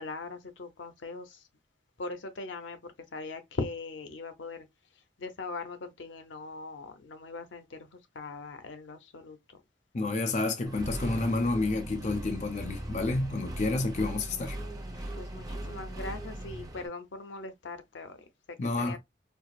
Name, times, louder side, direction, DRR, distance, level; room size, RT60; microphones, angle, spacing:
voice 1, 0.0-1.4 2.0-4.7 5.2-9.6 15.1-19.0, left 3 dB, 85° left, 0.7 m, -40 dB
voice 2, 9.9-14.6 18.6-19.0, left 2 dB, 40° left, 0.5 m, -29 dB
Accelerating revving vroom, 10.7-16.9, right 1 dB, 20° right, 0.6 m, -39 dB
4.4 x 2.0 x 2.3 m
head